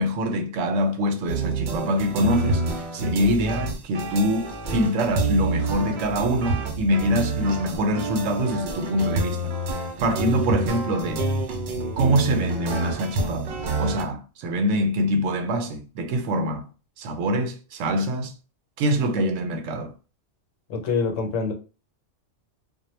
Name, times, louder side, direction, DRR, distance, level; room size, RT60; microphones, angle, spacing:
voice 1, 0.0-9.5 10.0-11.2 12.0-16.6 17.0-18.4 18.8-19.9, equal, 80° right, 0.9 m, -24 dB
sound 1, 1.3-14.0, right 2 dB, 65° right, 0.4 m, -28 dB
voice 2, 20.7-21.5, left 4 dB, 85° left, 1.0 m, -25 dB
2.2 x 2.1 x 3.0 m
omnidirectional pair, 1.3 m